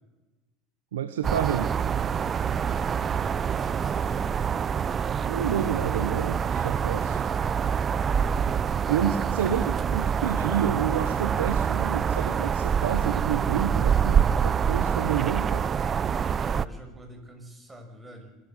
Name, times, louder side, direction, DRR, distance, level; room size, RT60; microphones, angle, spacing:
voice 1, 0.9-1.7 5.3-7.2 8.9-15.7, right 9 dB, 90° right, 10 dB, 1.2 m, -29 dB
sound 1, 1.2-16.7, right 7 dB, 35° right, 0.7 m, -26 dB
voice 2, 2.4-4.5 16.2-18.3, right 1 dB, 15° right, 4 dB, 6.4 m, -48 dB
25.5 x 13.5 x 7.9 m, 1.2 s
hypercardioid pair, 90°, 0 cm